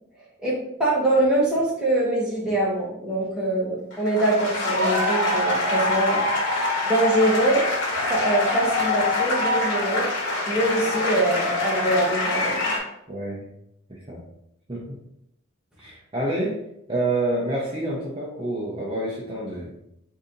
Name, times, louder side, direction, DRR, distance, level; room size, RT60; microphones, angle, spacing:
voice 1, 0.4-6.2 6.8-7.7 8.1-10.1 10.5-12.7, right 1 dB, 5° right, -7 dB, 1.1 m, -23 dB
sound 1, 3.9-12.8, left 2 dB, 55° left, 1.4 m, -24 dB
voice 2, 13.1-13.4 13.9-14.2 14.7-15.0 15.8-16.6 16.9-19.7, right 2 dB, 25° right, -5 dB, 0.7 m, -28 dB
4.0 x 2.7 x 3.9 m, 0.79 s
head